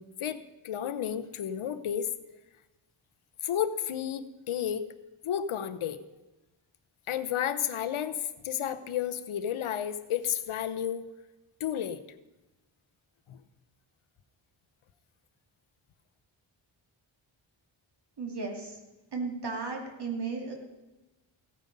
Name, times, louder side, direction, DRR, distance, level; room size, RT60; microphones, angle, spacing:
voice 1, 0.0-2.1 3.4-4.8 5.2-6.0 7.1-11.0 11.6-12.0 13.3-13.4, left 9 dB, 90° left, 10 dB, 0.9 m, -32 dB
voice 2, 18.2-18.8 19.1-20.5, right 4 dB, 55° right, 1 dB, 2.6 m, -35 dB
16.5 x 9.4 x 5.3 m, 1.0 s
wide cardioid pair, 160°, 48 cm